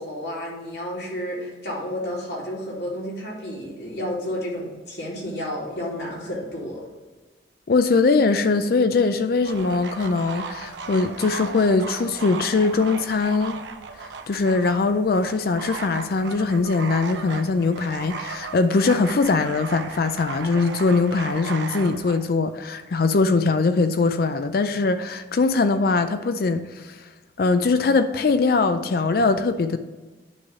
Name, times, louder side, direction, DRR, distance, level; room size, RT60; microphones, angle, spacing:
voice 1, 0.0-6.8, equal, 75° left, 2.6 m, -31 dB
voice 2, 7.7-13.6 14.3-27.0 27.4-29.8, left 3 dB, 55° left, 0.4 m, -21 dB
sound 1, 9.4-22.2, right 4 dB, 85° right, 0.7 m, -36 dB
9.7 x 3.3 x 5.6 m
head